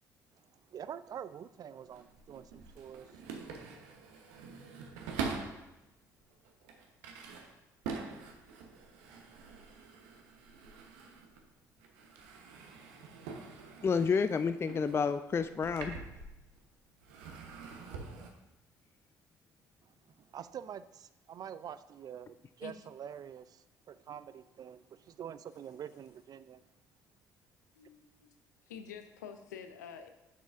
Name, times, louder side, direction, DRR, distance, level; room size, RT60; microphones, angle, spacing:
voice 1, 0.7-3.2 20.2-26.6, right 9 dB, 45° right, 14 dB, 0.4 m, -46 dB
sound 1, 1.8-5.7 6.3-11.5 11.8-16.6 17.0-18.3, right 5 dB, 70° right, 1.0 m, -45 dB
voice 2, 13.8-16.0, left 5 dB, 25° left, 11 dB, 0.4 m, -30 dB
voice 3, 27.7-28.4 28.7-30.1, left 7 dB, 80° left, 8 dB, 0.6 m, -47 dB
9.3 x 7.0 x 2.5 m, 0.97 s
figure-of-eight pair, 50°, 9 cm